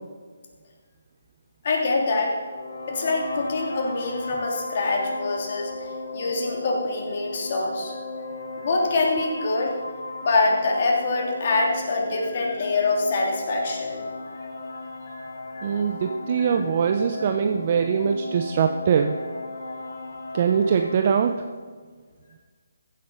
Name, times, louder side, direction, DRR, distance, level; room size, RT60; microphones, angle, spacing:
voice 1, 1.6-2.4 2.9-5.7 6.1-8.0 8.6-9.8 10.2-14.1 15.1-15.2 15.5-15.7 16.4-16.5 17.1-17.2, left 3 dB, 45° left, 0 dB, 2.7 m, -25 dB
sound 1, 2.4-21.2, left 3 dB, 65° left, 2.0 m, -35 dB
voice 2, 15.6-19.2 20.3-21.3, right 7 dB, 40° right, 6 dB, 0.7 m, -22 dB
15.0 x 7.7 x 5.6 m, 1.5 s
figure-of-eight pair, 150°, 0 cm